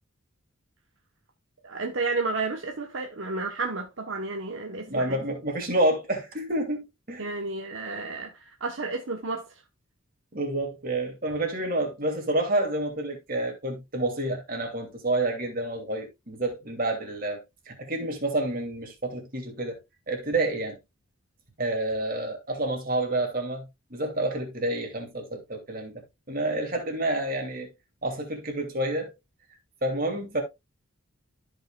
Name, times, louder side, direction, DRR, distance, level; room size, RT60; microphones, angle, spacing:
voice 1, 1.6-5.2 7.2-9.5, right 3 dB, 65° right, 1.1 m, -31 dB
voice 2, 4.9-7.3 10.3-17.4 17.7-19.8 20.1-20.8 21.6-25.9 26.3-27.7 28.0-29.1 29.8-30.4, right 1 dB, 40° right, 2.7 m, -29 dB
13.5 x 5.6 x 2.4 m
head